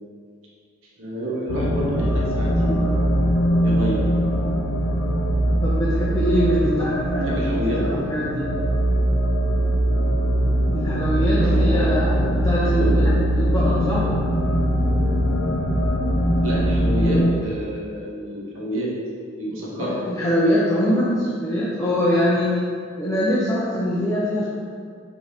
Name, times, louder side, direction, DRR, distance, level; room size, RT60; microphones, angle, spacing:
voice 1, 1.0-3.0 3.6-4.2 7.2-7.8 11.4-12.1 12.6-13.2 16.4-18.9 19.4-19.9, right 1 dB, 80° right, -5 dB, 0.9 m, -28 dB
sound 1, 1.5-17.3, equal, 85° left, 0.4 m, -21 dB
voice 2, 5.6-7.4 7.8-8.5 10.7-14.1 19.8-22.6 23.0-24.4, equal, 15° left, -7 dB, 0.4 m, -23 dB
4.9 x 2.6 x 2.7 m, 2.2 s
head